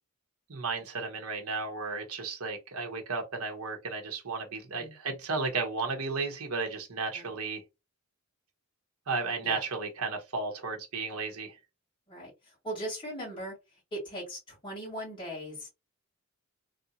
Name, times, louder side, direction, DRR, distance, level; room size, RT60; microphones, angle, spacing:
voice 1, 0.5-7.6 9.1-11.5, right 4 dB, 70° right, 1.0 m, -34 dB
voice 2, 4.8-5.2 7.1-7.4 9.4-9.6 12.1-13.5 13.9-15.7, right 1 dB, 20° left, 1.9 m, -39 dB
3.3 x 2.6 x 2.8 m
head